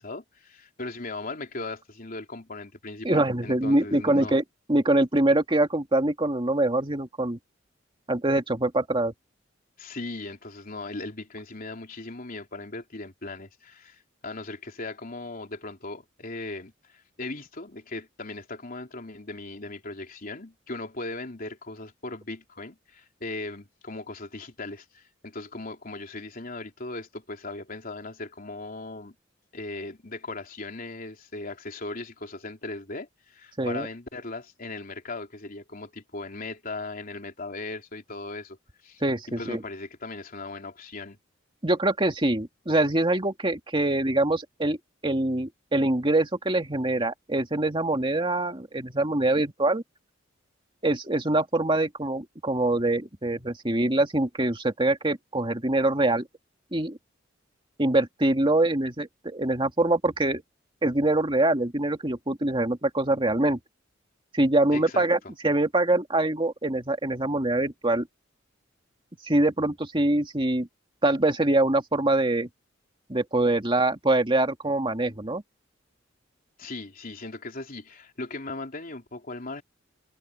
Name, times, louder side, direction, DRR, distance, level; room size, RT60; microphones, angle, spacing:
voice 1, 0.0-4.3 9.8-29.2 29.5-38.6 38.8-39.0 39.3-41.2 64.7-65.1 76.6-79.6, left 2 dB, 50° left, 3.6 m, -38 dB
voice 2, 3.0-4.4 4.7-7.4 8.1-9.1 33.6-33.9 39.0-39.6 41.6-44.8 45.0-49.8 50.8-56.3 56.7-57.0 57.8-60.4 60.8-63.6 64.3-68.1 69.2-70.7 71.0-72.5 73.1-75.4, right 2 dB, 25° right, 2.4 m, -24 dB
head